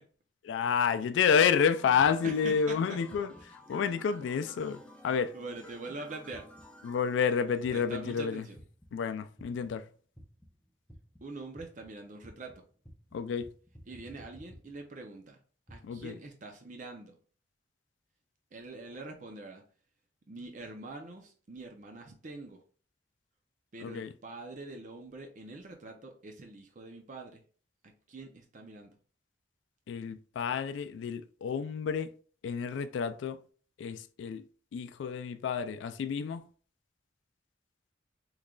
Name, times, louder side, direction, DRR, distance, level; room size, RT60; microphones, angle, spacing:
voice 1, 0.4-3.3 3.7-5.3 6.8-8.4 8.9-9.8 13.1-13.5 15.9-16.1 23.8-24.1 29.9-32.1 32.4-33.4 33.8-34.4 34.7-36.4, left 6 dB, 85° left, 0.3 m, -29 dB
sound 1, 1.2-8.1 8.6-9.0 9.4-9.9 10.1-15.0 15.7-16.1, equal, 5° left, 0.5 m, -53 dB
voice 2, 2.2-3.0 5.3-6.5 7.7-8.6 11.2-12.6 13.9-15.4 15.7-17.1 18.5-19.6 20.3-22.6 23.7-27.4 27.8-29.0, right 2 dB, 45° right, 0.5 m, -44 dB
3.6 x 3.1 x 2.3 m
head